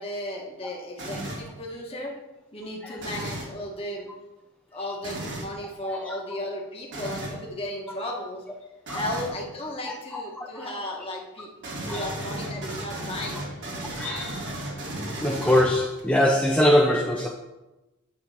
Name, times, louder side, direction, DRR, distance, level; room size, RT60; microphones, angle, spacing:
voice 1, 0.0-2.2 2.5-4.1 4.7-8.4 8.9-11.5 11.8-13.5, left 1 dB, 25° left, -1 dB, 1.5 m, -35 dB
sound 1, 1.0-1.5 3.0-3.5 5.0-5.5 6.9-7.4 8.9-9.4 11.6-16.0, right 1 dB, 55° right, 1.9 m, -34 dB
voice 2, 5.8-6.4 7.9-8.0 8.9-9.0 10.1-10.7 11.9-12.0 14.0-14.4 15.2-17.3, left 1 dB, 5° left, -1 dB, 0.5 m, -23 dB
9.5 x 3.8 x 7.0 m, 1.0 s
head